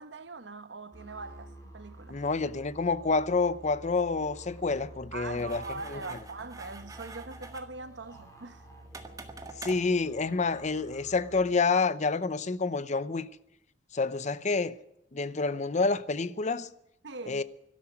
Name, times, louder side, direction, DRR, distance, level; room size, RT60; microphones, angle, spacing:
voice 1, 0.0-2.2 5.1-8.7 17.0-17.4, right 3 dB, 80° right, 1.1 m, -42 dB
sound 1, 0.9-11.4, right 1 dB, 20° left, 3.8 m, -50 dB
voice 2, 2.1-5.6 5.9-6.0 9.6-13.3 13.9-14.8 15.1-16.7 17.3-17.4, left 4 dB, 40° left, 0.7 m, -28 dB
sound 2, 5.4-10.9, right 3 dB, 20° right, 1.6 m, -47 dB
12.5 x 11.5 x 9.9 m
head